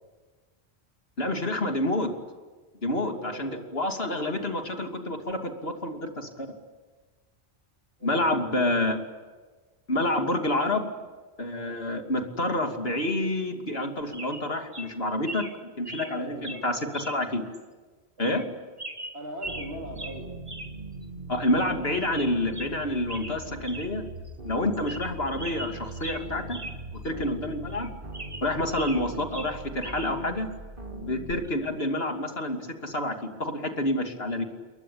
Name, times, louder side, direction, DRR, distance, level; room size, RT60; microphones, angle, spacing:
voice 1, 1.2-2.1 2.8-6.5 8.0-9.0 9.9-10.9 11.4-15.5 15.8-17.5 18.2-18.4 21.3-24.0 24.4-26.6 26.9-27.9 28.4-30.5 30.9-34.4, left 1 dB, 65° left, 4 dB, 3.0 m, -28 dB
voice 2, 3.1-3.7 4.2-4.4 8.0-8.7 11.5-11.8 15.9-16.9 18.2-18.4 19.1-20.3 28.6-28.8, right 1 dB, 70° right, -1 dB, 3.6 m, -41 dB
sound 1, 13.7-13.9 14.1-14.4 14.7-14.9 15.3-15.5 15.9-16.1 16.4-16.6 16.9-17.2 17.5-17.6 18.2-18.5 18.8-19.7 20.0-20.2 20.5-20.7 21.0-21.1 21.5-21.7 22.0-22.7 23.1-23.4 23.6-23.9 24.3-24.4 24.7-25.1 25.4-26.8 27.1-27.2 27.7-29.0 29.3-30.1 31.3-31.5, right 1 dB, 30° right, 2.1 m, -40 dB
sound 2, 19.4-31.5, right 2 dB, 55° right, 2.5 m, -41 dB
29.0 x 22.0 x 8.7 m, 1.4 s
omnidirectional pair, 1.1 m